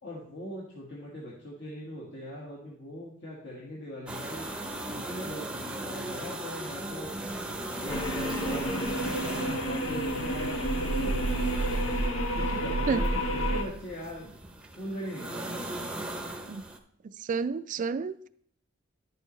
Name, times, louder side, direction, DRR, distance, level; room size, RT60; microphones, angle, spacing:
voice 1, 0.0-4.5 4.8-7.1 7.6-9.0 9.3-11.3 12.3-14.3 14.8-15.9, equal, 60° left, -5 dB, 1.6 m, -40 dB
sound 1, 4.1-16.8, right 2 dB, 5° right, 0.7 m, -38 dB
sound 2, 7.9-13.6, right 1 dB, 80° left, 1.0 m, -29 dB
voice 2, 17.3-18.3, right 5 dB, 40° right, 12 dB, 0.3 m, -30 dB
11.0 x 6.6 x 3.1 m, 0.63 s
head